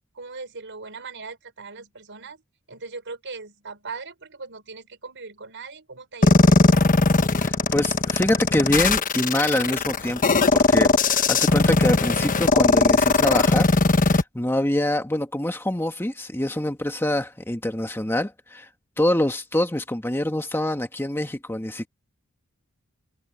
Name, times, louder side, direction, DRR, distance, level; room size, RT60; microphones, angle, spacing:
voice 1, 0.1-2.4 2.7-6.9, right 4 dB, 60° right, 5.4 m, -39 dB
sound 1, 6.2-14.2, left 3 dB, 40° left, 1.2 m, -19 dB
voice 2, 7.4-13.8 14.0-18.7 19.0-21.9, left 1 dB, 10° left, 1.4 m, -25 dB
head